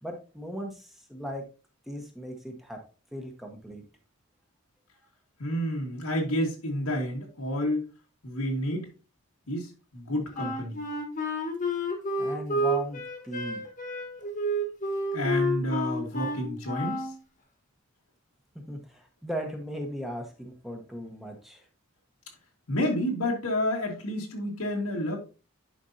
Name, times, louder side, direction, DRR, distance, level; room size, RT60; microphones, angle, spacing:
voice 1, 0.0-1.4 1.9-2.8 3.1-3.8 12.2-13.6 18.7-21.6, equal, ahead, 1.2 m, -37 dB
voice 2, 5.4-7.8 8.2-8.9 9.5-10.8 15.1-17.1 22.7-25.2, equal, 85° left, 1.8 m, -29 dB
Wind instrument woodwind instrument, 10.3-17.2, equal, 35° left, 1.4 m, -30 dB
10.5 x 5.3 x 2.8 m
head